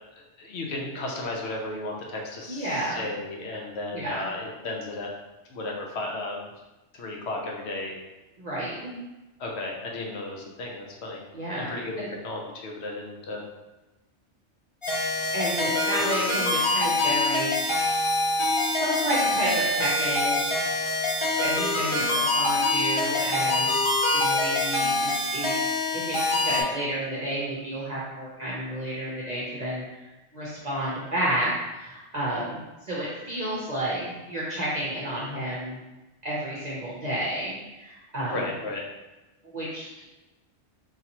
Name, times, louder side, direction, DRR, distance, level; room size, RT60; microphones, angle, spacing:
voice 1, 0.1-5.1 5.5-6.5 6.9-7.9 9.4-11.2 11.6-13.4 38.3-38.8, left 2 dB, 70° left, -1 dB, 0.9 m, -34 dB
voice 2, 2.5-3.0 3.9-4.3 8.4-9.0 11.3-12.1 15.3-17.7 18.7-20.7 21.4-23.7 24.1-32.6 32.9-35.8 36.2-38.4 39.5-40.1, right 1 dB, 40° right, -7 dB, 0.8 m, -31 dB
sound 1, 14.8-26.6, left 2 dB, 30° left, 0.6 m, -25 dB
3.9 x 2.8 x 2.8 m, 1.1 s
omnidirectional pair, 1.2 m